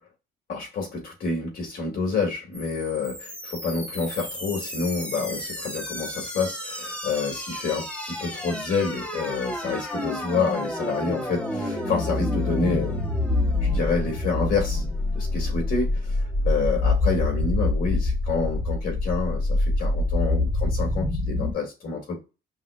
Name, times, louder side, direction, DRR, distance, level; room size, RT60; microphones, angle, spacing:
voice 1, 0.5-13.0 13.6-14.8 15.2-16.1 16.4-22.2, left 4 dB, 60° left, 1 dB, 2.0 m, -28 dB
sound 1, 2.5-21.5, left 2 dB, 5° left, 0.8 m, -27 dB
5.4 x 2.2 x 2.4 m, 0.28 s
cardioid pair, 110°, 17 cm